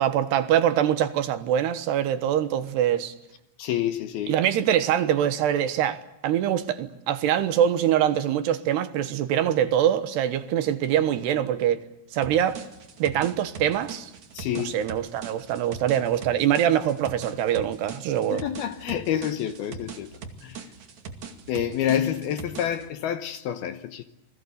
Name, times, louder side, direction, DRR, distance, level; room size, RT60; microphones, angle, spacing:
voice 1, 0.0-3.1 4.3-11.8 12.1-12.6 13.0-14.1 14.5-18.4, right 10 dB, 75° right, 3.2 m, -24 dB
voice 2, 3.6-4.4 14.3-14.8 18.3-20.1 20.4-20.6 21.5-24.0, left 10 dB, 70° left, 2.7 m, -28 dB
sound 1, 12.2-22.9, right 5 dB, 45° right, 3.1 m, -41 dB
29.0 x 21.0 x 8.2 m
omnidirectional pair, 5.2 m